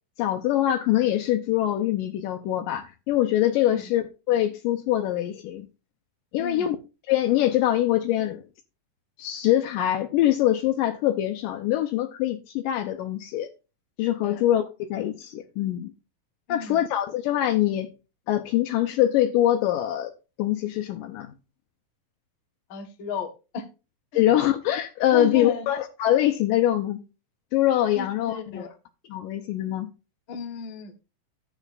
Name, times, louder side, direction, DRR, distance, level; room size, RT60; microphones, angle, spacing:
voice 1, 0.2-5.7 6.3-6.8 7.1-8.5 9.2-13.5 14.0-15.9 16.5-17.9 18.3-20.1 20.4-21.3 24.1-27.0 27.5-28.7 29.1-29.9, left 13 dB, 80° left, 2.2 m, -24 dB
voice 2, 6.4-6.7 14.2-14.4 16.5-16.8 22.7-23.6 24.1-24.2 25.1-25.7 28.0-28.7 30.3-30.9, left 4 dB, 45° left, 1.8 m, -34 dB
12.0 x 8.2 x 2.4 m
omnidirectional pair, 4.2 m